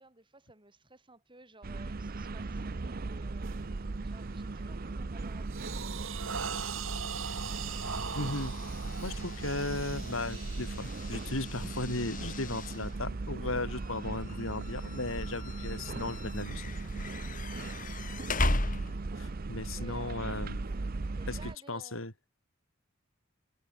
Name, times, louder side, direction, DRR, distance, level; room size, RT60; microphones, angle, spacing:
voice 1, 0.0-3.8 4.0-7.4 19.8-20.4 21.1-22.0, right 2 dB, 25° right, 7.8 m, -57 dB
sound 1, 1.6-21.6, right 3 dB, 45° right, 0.6 m, -38 dB
sound 2, 3.4-3.7 4.2-4.5 4.9-13.0, right 6 dB, 80° right, 2.9 m, -41 dB
sound 3, 6.5-19.3, left 2 dB, 40° left, 3.5 m, -39 dB
voice 2, 8.1-8.5 9.0-17.1 19.2-20.6 21.3-21.4 21.7-22.1, left 2 dB, 85° left, 4.7 m, -36 dB
head